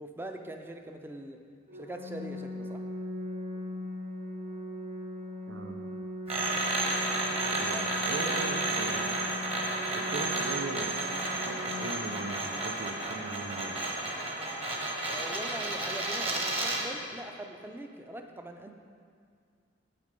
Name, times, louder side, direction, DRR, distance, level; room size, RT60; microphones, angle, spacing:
voice 1, 0.0-1.4 1.7-2.8 7.5-7.8 15.1-18.7, right 1 dB, 10° right, 5 dB, 0.5 m, -42 dB
Organ, 1.7-12.7, left 1 dB, 50° right, 1.8 m, -40 dB
voice 2, 5.5-5.9 7.5-9.2 9.9-11.2 11.4-13.8, right 3 dB, 80° right, 3 dB, 0.5 m, -39 dB
sound 1, 6.3-16.9, right 2 dB, 30° right, 1.1 m, -32 dB
8.2 x 6.6 x 5.2 m, 2.2 s
head